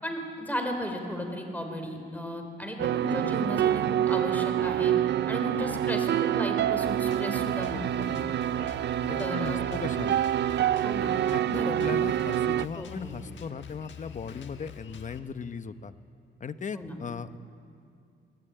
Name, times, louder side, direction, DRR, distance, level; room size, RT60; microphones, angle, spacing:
voice 1, 0.0-4.9 5.3-8.2 8.5-8.6 9.2-9.6 10.7-11.1 11.5-11.9 12.8-13.1 16.7-16.9, equal, 10° left, 4 dB, 3.9 m, -35 dB
sound 1, 2.8-12.6, right 11 dB, 65° right, 0.4 m, -27 dB
Drum kit, 6.8-15.2, left 8 dB, 80° left, 1.3 m, -46 dB
voice 2, 9.0-10.2 11.3-15.9 16.4-17.4, left 6 dB, 40° left, 12 dB, 0.8 m, -38 dB
22.5 x 16.5 x 8.9 m, 2.5 s
cardioid pair, 105°, 19 cm